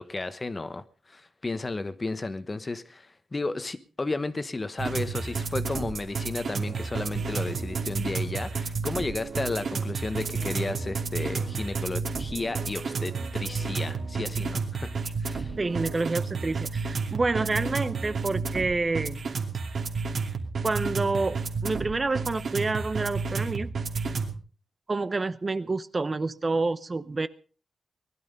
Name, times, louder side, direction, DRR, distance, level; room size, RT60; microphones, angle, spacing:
voice 1, 0.0-15.5, left 3 dB, 25° left, 13 dB, 1.1 m, -33 dB
sound 1, 4.8-24.3, right 4 dB, 60° right, 2.7 m, -31 dB
voice 2, 15.6-19.2 20.6-23.7 24.9-27.3, right 3 dB, 30° right, 14 dB, 0.8 m, -28 dB
20.0 x 12.5 x 5.3 m, 0.38 s
wide cardioid pair, 140°, 0 cm